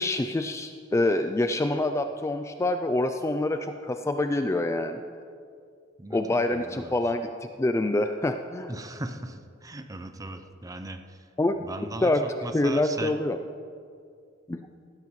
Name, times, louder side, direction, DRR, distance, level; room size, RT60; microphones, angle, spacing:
voice 1, 0.0-5.0 6.1-7.3 7.6-8.7 11.4-11.6 12.0-12.2 12.5-13.4 14.5-14.6, left 2 dB, 15° left, 7 dB, 0.3 m, -26 dB
voice 2, 6.0-6.9 8.7-11.2 11.6-13.1, right 2 dB, 20° right, 8 dB, 0.6 m, -38 dB
15.5 x 12.5 x 3.2 m, 2.3 s
head